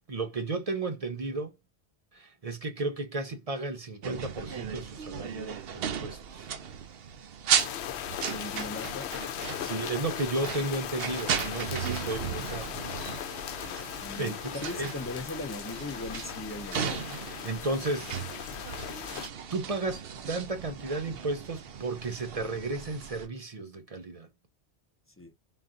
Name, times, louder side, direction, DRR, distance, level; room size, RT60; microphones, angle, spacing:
voice 1, 0.1-1.5 2.1-6.5 8.5-8.6 9.5-12.8 13.4-13.6 14.2-14.9 16.7-18.2 19.5-24.3, right 2 dB, 45° right, 0.6 m, -34 dB
sound 1, 4.0-23.3, right 7 dB, 65° right, 0.8 m, -36 dB
sound 2, 7.6-19.3, left 10 dB, 80° left, 0.8 m, -38 dB
voice 2, 8.3-9.1 14.0-17.1 25.2-25.3, left 2 dB, 20° left, 0.4 m, -39 dB
3.9 x 2.5 x 3.7 m
omnidirectional pair, 1.1 m